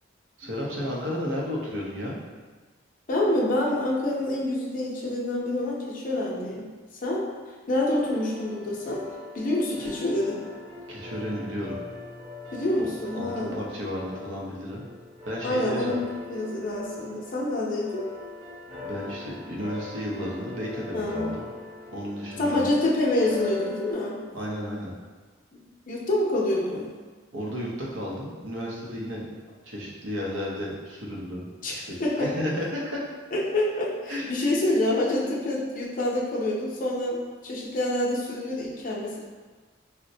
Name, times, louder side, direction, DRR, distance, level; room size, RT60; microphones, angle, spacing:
voice 1, 0.4-2.2 10.9-11.8 12.8-12.9 13.1-14.8 15.2-15.9 18.8-21.4 21.9-22.7 24.3-24.9 27.3-29.2 29.6-33.0 34.1-34.3, equal, 85° right, -3 dB, 0.7 m, -33 dB
voice 2, 3.1-6.7 7.0-7.2 7.7-9.0 9.3-10.4 12.5-13.6 15.4-18.1 20.9-21.3 22.4-24.2 25.9-26.9 31.6-31.7 32.0-32.3 33.3-39.2, left 1 dB, 45° left, -4 dB, 0.5 m, -27 dB
sound 1, 8.0-23.9, left 3 dB, 30° right, 0.9 m, -41 dB
4.0 x 2.1 x 2.6 m, 1.4 s
head